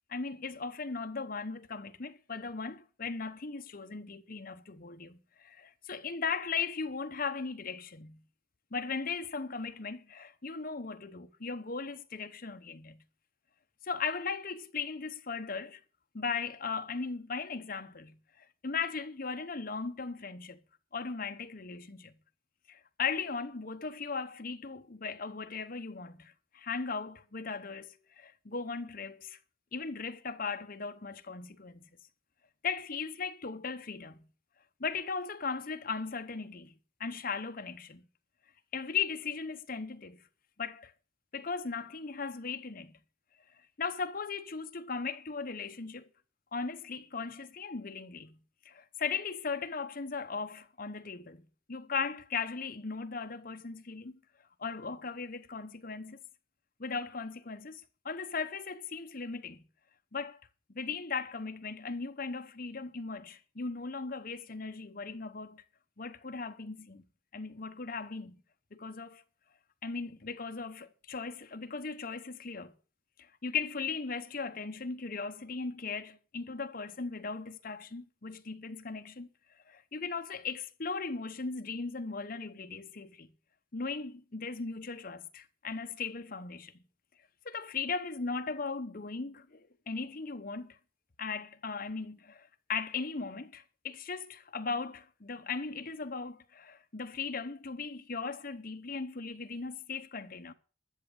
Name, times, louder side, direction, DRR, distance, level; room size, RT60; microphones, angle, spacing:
voice 1, 0.1-8.2 8.7-13.0 13.8-15.8 16.1-20.6 20.9-22.1 22.7-29.4 29.7-31.9 32.6-34.3 34.8-38.1 38.7-40.2 40.6-40.9 41.3-43.0 43.5-46.0 46.5-48.4 48.6-51.4 51.7-54.2 54.6-56.2 56.8-59.7 60.1-60.4 60.7-65.6 66.0-67.0 67.3-68.4 68.7-69.2 69.8-72.7 73.2-83.3 83.7-86.7 87.4-90.8 91.2-100.5, left 5 dB, 45° left, 0.9 m, -38 dB
13.0 x 7.3 x 7.1 m
head